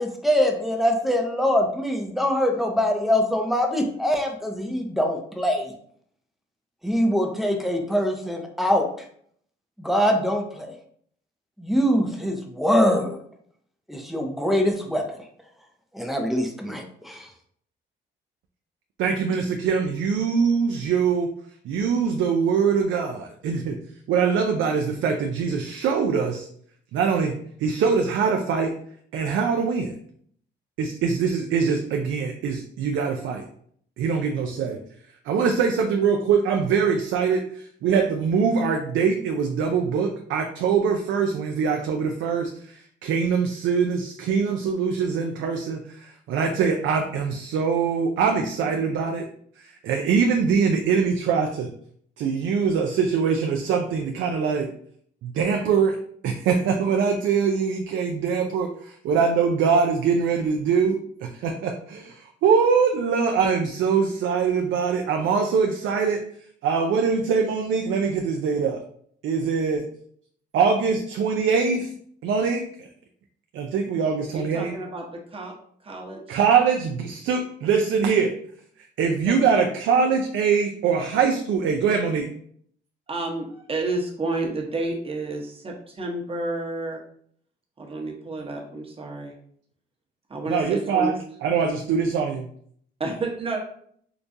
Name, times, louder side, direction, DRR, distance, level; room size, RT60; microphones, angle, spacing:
voice 1, 0.0-5.7 6.8-8.8 9.8-10.7 11.6-13.2 13.9-15.1 15.9-17.3, equal, ahead, 3 dB, 0.6 m, -23 dB
voice 2, 19.0-21.3 21.6-23.8 24.1-26.5 26.9-28.7 29.1-29.9 30.8-33.5 34.0-34.8 35.2-49.3 49.6-51.7 52.2-54.7 55.2-56.0 56.2-66.2 66.6-68.8 69.2-69.8 70.5-71.9 72.2-72.9 73.5-74.7 76.3-78.3 78.8-82.3 90.5-92.5, right 6 dB, 75° right, 3 dB, 0.5 m, -23 dB
voice 3, 74.3-75.5 75.8-76.4 79.5-79.7 83.1-87.0 87.8-89.3 90.3-91.1 93.0-93.6, right 2 dB, 30° right, -1 dB, 1.0 m, -30 dB
4.8 x 2.2 x 2.6 m, 0.62 s
cardioid pair, 90°, 20 cm